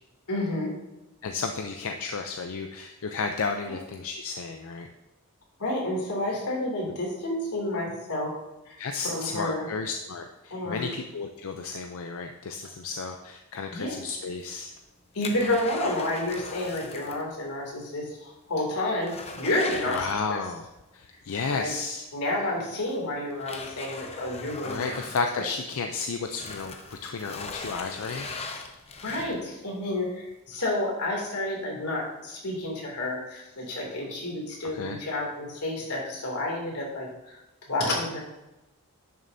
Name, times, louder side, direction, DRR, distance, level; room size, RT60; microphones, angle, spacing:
voice 1, 0.3-0.7 3.7-3.8 5.6-8.3 8.7-9.7 10.5-10.9 13.7-14.0 15.1-20.4 21.5-21.7 22.1-24.9 25.4-25.5 29.0-37.4 37.7-38.2, left 1 dB, 90° left, -1 dB, 2.7 m, -30 dB
voice 2, 1.2-4.9 8.8-14.7 19.9-20.6 20.9-22.0 24.6-28.3 34.7-35.0, left 4 dB, 65° left, 5 dB, 0.5 m, -32 dB
sound 1, 14.3-17.3 17.5-17.6 18.1-18.2 18.6-20.6 22.0-22.1 22.8-25.9 26.2-29.6 30.1-30.2, left 3 dB, 30° left, 0.7 m, -40 dB
10.5 x 6.5 x 2.7 m, 0.97 s
head